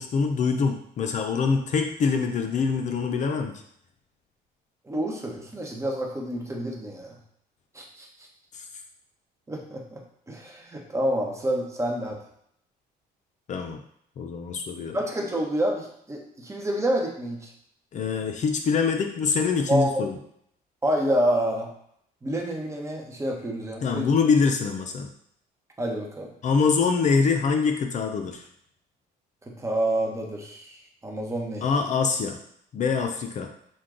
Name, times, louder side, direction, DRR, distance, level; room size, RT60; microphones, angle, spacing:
voice 1, 0.0-3.6 8.5-8.6 13.5-13.8 14.2-15.0 17.9-20.2 23.8-25.1 26.4-28.4 31.6-32.4 32.7-33.5, left 5 dB, 45° left, 4 dB, 0.5 m, -24 dB
voice 2, 4.9-7.1 7.7-8.1 9.5-10.0 10.3-12.2 14.9-17.5 19.7-20.1 20.8-21.7 22.2-24.1 25.8-26.3 29.6-30.7 31.0-31.6, right 1 dB, 15° right, 0 dB, 0.9 m, -28 dB
6.2 x 2.2 x 3.7 m, 0.70 s
cardioid pair, 110°, 17 cm